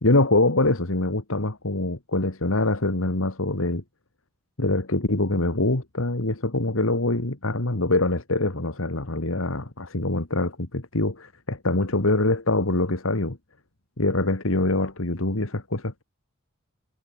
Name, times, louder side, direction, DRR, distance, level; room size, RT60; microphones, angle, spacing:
voice 1, 0.0-3.8 4.6-13.4 14.0-16.0, left 2 dB, 70° left, 2.2 m, -24 dB
head